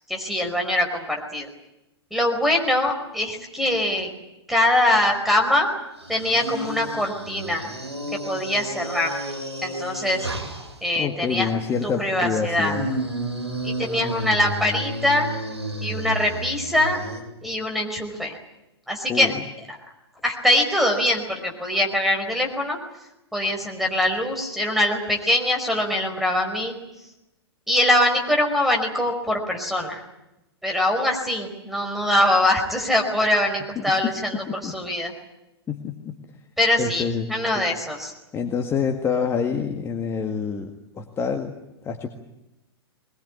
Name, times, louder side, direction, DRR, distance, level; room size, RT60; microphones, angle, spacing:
voice 1, 0.1-1.5 2.1-4.1 4.5-5.7 6.1-7.7 8.2-9.1 9.6-10.2 10.8-11.5 11.8-12.8 13.6-15.3 15.8-17.0 17.4-18.4 18.9-19.3 20.2-22.8 23.3-26.7 27.7-30.0 30.6-35.1 36.6-38.1, left 1 dB, ahead, 2 dB, 5.0 m, -23 dB
sound 1, 6.0-10.8 11.7-17.2, right 1 dB, 80° right, 6.7 m, -32 dB
voice 2, 11.0-12.9 19.1-19.4 33.8-33.9 34.5-34.7 35.7-36.2 36.8-37.6 38.3-40.7 41.0-41.5 41.8-42.1, left 6 dB, 15° left, 4 dB, 1.9 m, -27 dB
22.5 x 21.0 x 9.8 m, 0.92 s
figure-of-eight pair, 110°, 14 cm